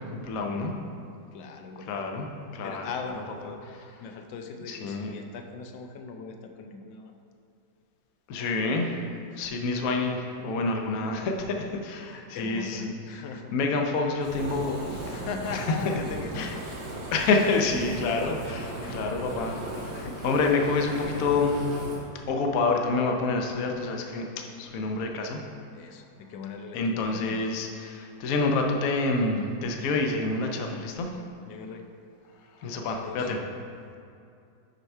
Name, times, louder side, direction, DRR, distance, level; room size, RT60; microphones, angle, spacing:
voice 1, 0.1-0.7 1.9-2.3 2.5-2.9 4.7-5.1 8.3-12.9 13.5-15.1 15.5-15.7 16.4-16.5 17.1-19.9 20.2-21.6 22.3-24.3 24.6-25.4 26.7-31.1 32.6-33.4, left 3 dB, 60° left, 3 dB, 1.0 m, -27 dB
voice 2, 1.3-2.0 2.6-3.6 4.0-7.1 9.3-9.6 11.1-13.5 15.1-16.5 18.8-19.6 19.9-20.2 25.7-27.5 31.5-31.9 32.9-33.3, left 5 dB, 85° left, 5 dB, 1.3 m, -40 dB
Fire, 14.2-22.0, right 1 dB, 70° right, 2.1 m, -37 dB
6.8 x 4.6 x 5.4 m, 2.5 s
omnidirectional pair, 1.9 m